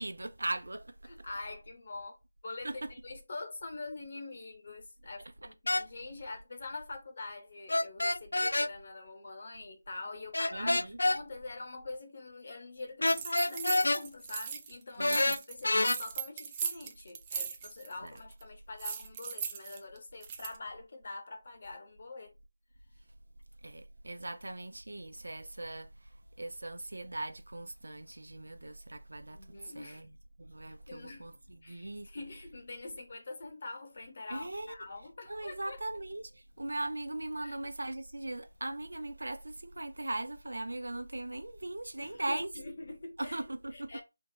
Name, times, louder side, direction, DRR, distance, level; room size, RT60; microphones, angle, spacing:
voice 1, 0.0-1.1 2.6-2.9 10.5-11.0 15.0-15.4 18.0-18.2 23.6-30.1 30.4-32.1 34.3-34.8 35.3-42.5 43.2-44.0, right 2 dB, 80° right, 0.7 m, -39 dB
voice 2, 1.1-22.3 29.3-30.0 30.6-31.3 31.6-35.8 37.4-37.6 42.0-43.4 43.7-44.0, left 3 dB, 45° left, 1.2 m, -45 dB
sound 1, 5.7-5.9 7.7-8.7 10.3-11.2 13.0-14.0 15.0-16.0, left 2 dB, 75° left, 0.3 m, -27 dB
sound 2, 13.0-14.7 15.0-17.9 18.2-18.4 18.8-20.6, right 7 dB, 20° right, 0.4 m, -39 dB
3.7 x 2.5 x 3.7 m
figure-of-eight pair, 165°, 0 cm